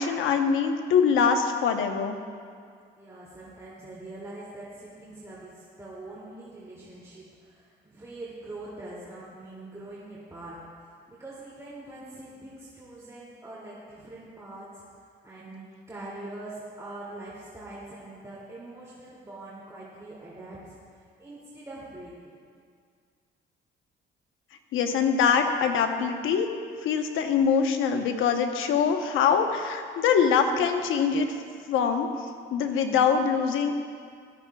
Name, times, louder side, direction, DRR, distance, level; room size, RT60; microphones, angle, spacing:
voice 1, 0.0-2.2 24.7-26.5 26.8-31.3 31.7-32.1 32.5-33.8, left 6 dB, 85° left, 5 dB, 1.0 m, -23 dB
voice 2, 3.0-20.8 21.2-22.4, right 2 dB, 15° right, -8 dB, 2.7 m, -43 dB
16.5 x 13.5 x 2.4 m, 2.1 s
cardioid pair, 90°, 20 cm